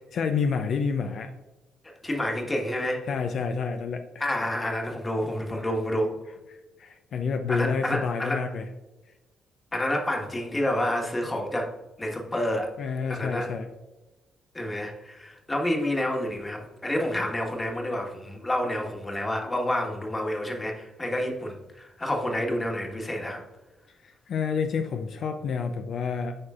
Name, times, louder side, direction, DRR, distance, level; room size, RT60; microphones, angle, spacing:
voice 1, 0.1-1.3 3.1-4.0 6.5-8.7 12.8-13.7 24.0-26.3, left 5 dB, 65° left, 6 dB, 0.5 m, -29 dB
voice 2, 2.0-3.0 4.2-6.2 7.5-8.4 9.7-11.7 12.0-12.7 13.1-13.5 14.5-23.4, left 1 dB, 20° left, 1 dB, 1.4 m, -29 dB
8.5 x 4.9 x 2.4 m, 1.1 s
cardioid pair, 90°, 0 cm